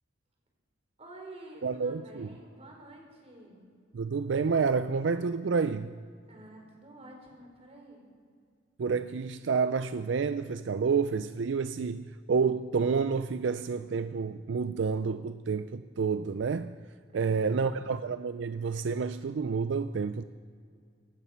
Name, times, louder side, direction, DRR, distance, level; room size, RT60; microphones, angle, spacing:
voice 1, 1.0-3.6 6.3-8.0 17.1-18.0, right 1 dB, 35° right, 4.4 m, -50 dB
voice 2, 1.6-2.3 3.9-6.0 8.8-16.8 17.1-20.2, right 5 dB, 75° right, 0.4 m, -29 dB
16.5 x 14.5 x 5.7 m
head